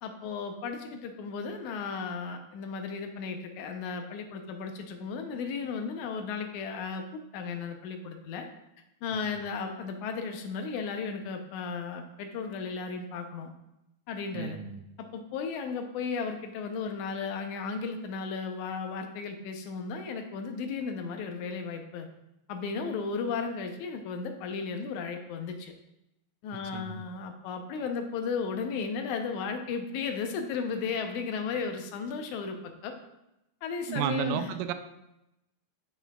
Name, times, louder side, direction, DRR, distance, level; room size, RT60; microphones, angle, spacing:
voice 1, 0.0-7.0 7.3-8.5 9.0-13.5 14.1-14.6 15.0-22.1 22.5-25.7 26.4-32.6 32.8-32.9 33.6-34.5, left 5 dB, 80° left, 5 dB, 2.1 m, -35 dB
voice 2, 14.3-14.8 26.7-27.0 33.9-34.7, right 10 dB, 90° right, 9 dB, 2.1 m, -32 dB
9.1 x 6.0 x 2.3 m, 0.89 s
omnidirectional pair, 3.5 m